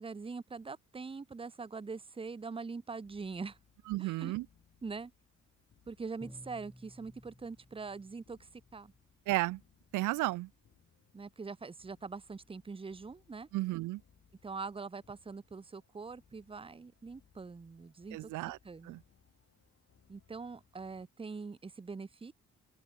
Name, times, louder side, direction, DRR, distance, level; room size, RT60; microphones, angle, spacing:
voice 1, 0.0-3.6 4.0-4.3 4.8-5.1 5.9-8.9 11.1-13.5 14.4-18.3 18.6-19.0 20.1-22.3, right 4 dB, 20° right, 0.8 m, -43 dB
sound 1, 3.0-21.1, left 7 dB, 45° left, 4.0 m, -69 dB
voice 2, 3.9-4.5 9.3-9.6 9.9-10.5 13.5-14.0 18.1-18.6 18.8-19.0, right 19 dB, 80° right, 0.5 m, -33 dB
Bowed string instrument, 6.2-9.0, left 1 dB, 5° left, 4.9 m, -55 dB
open air
cardioid pair, 90°, 30 cm